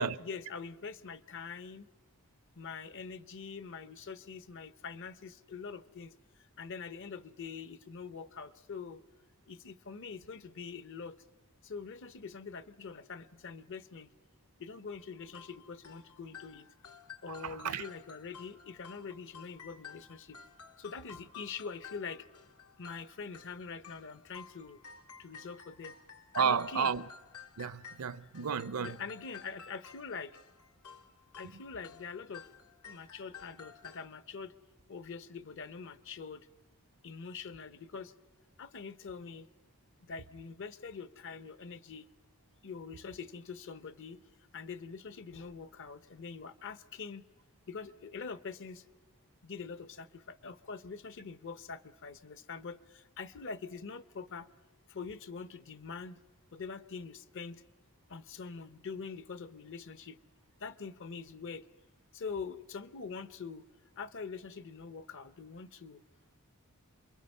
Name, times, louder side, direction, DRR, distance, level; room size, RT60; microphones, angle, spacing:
voice 1, 0.0-1.9 2.6-6.1 6.6-9.0 9.5-11.2 11.6-14.1 14.6-16.7 17.2-20.4 20.8-22.3 22.8-24.8 25.2-26.0 26.4-26.9 28.8-30.4 31.4-32.5 32.9-34.6 34.9-36.5 37.0-38.1 38.6-39.5 40.0-42.1 42.6-44.2 44.5-47.2 47.7-48.8 49.4-54.5 54.9-56.2 56.5-57.6 58.1-60.2 60.6-61.7 62.1-63.6 64.0-66.0, left 5 dB, 55° left, 0.8 m, -44 dB
sound 1, 15.0-34.1, left 6 dB, 85° left, 1.6 m, -53 dB
voice 2, 26.3-27.0 27.6-29.0, right 6 dB, 80° right, 0.6 m, -31 dB
28.0 x 22.5 x 5.4 m
head